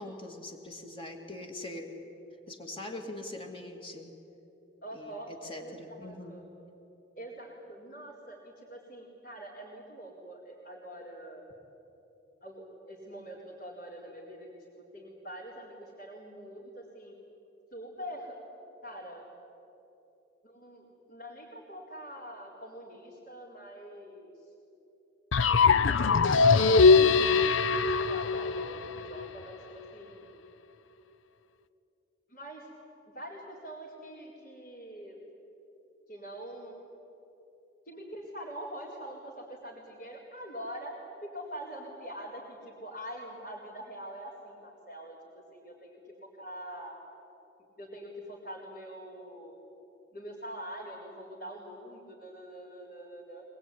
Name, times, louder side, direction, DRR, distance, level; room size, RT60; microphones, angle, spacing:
voice 1, 0.0-2.0 2.5-4.1 4.9-6.4, left 2 dB, 25° left, 4 dB, 2.3 m, -42 dB
voice 2, 4.8-6.4 7.2-11.4 12.4-14.5 14.8-17.1 17.7-18.4 18.8-19.3 20.4-24.5 25.9-30.3 32.3-32.7 33.1-35.2 36.1-36.8 37.8-46.9 47.8-49.6 50.1-53.4, right 1 dB, 50° left, -5 dB, 4.2 m, -44 dB
sound 1, 25.3-29.3, left 4 dB, 90° left, 0.7 m, -22 dB
23.5 x 20.5 x 9.8 m, 3.0 s
head